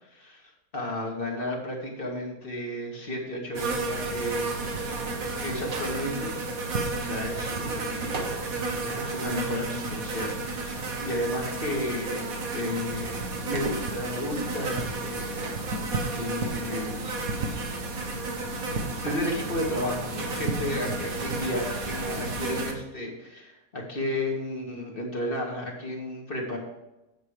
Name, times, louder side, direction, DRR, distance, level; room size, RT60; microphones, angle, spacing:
voice 1, 0.0-0.4 0.7-4.6 5.4-8.1 8.8-10.7 11.0-13.2 13.4-17.1 19.0-26.6, left 1 dB, 35° left, 0 dB, 2.2 m, -33 dB
sound 1, 3.5-22.7, right 3 dB, 60° right, 1.7 m, -32 dB
9.2 x 7.5 x 4.9 m, 0.94 s
omnidirectional pair, 1.7 m